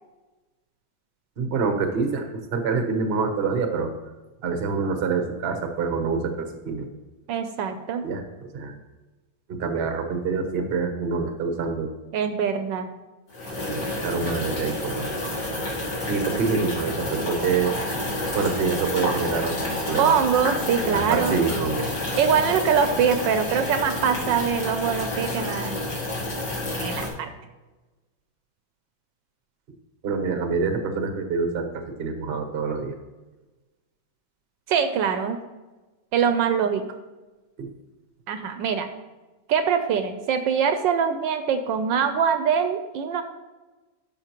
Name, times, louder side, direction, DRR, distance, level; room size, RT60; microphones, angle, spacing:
voice 1, 1.4-3.9 4.4-6.9 8.0-8.2 8.5-8.7 9.5-11.9 13.7-15.1 16.1-17.7 18.3-20.2 20.8-21.9 30.0-31.7 32.0-32.9 37.6-37.7, right 4 dB, 45° right, 6 dB, 0.8 m, -26 dB
voice 2, 7.3-8.1 12.1-12.9 20.0-21.4 22.2-25.8 26.8-27.3 34.7-35.4 36.1-36.8 38.3-38.9 39.5-43.2, right 7 dB, 75° right, 9 dB, 1.2 m, -23 dB
sound 1, 13.3-27.1, left 1 dB, 55° left, 2.7 m, -29 dB
12.5 x 5.9 x 3.0 m, 1.2 s
omnidirectional pair, 2.2 m